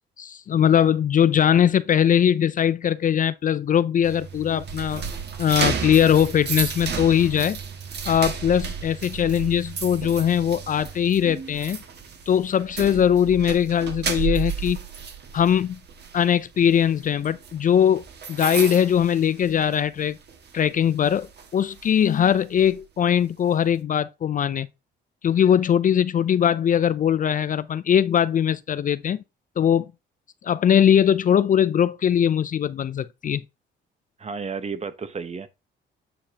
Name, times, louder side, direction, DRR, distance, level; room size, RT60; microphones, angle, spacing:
voice 1, 0.2-5.0 5.4-7.6 8.1-11.8 12.3-14.8 15.3-15.8 16.1-20.2 20.5-24.7 25.2-29.2 29.6-29.9 30.4-33.4, left 9 dB, 40° left, 0.4 m, -21 dB
sound 1, 4.0-20.0 20.3-20.6 21.0-22.7, right 6 dB, 55° right, 1.7 m, -33 dB
voice 2, 34.2-35.5, right 5 dB, 35° right, 1.0 m, -32 dB
8.7 x 4.9 x 2.8 m
cardioid pair, 90°, 20 cm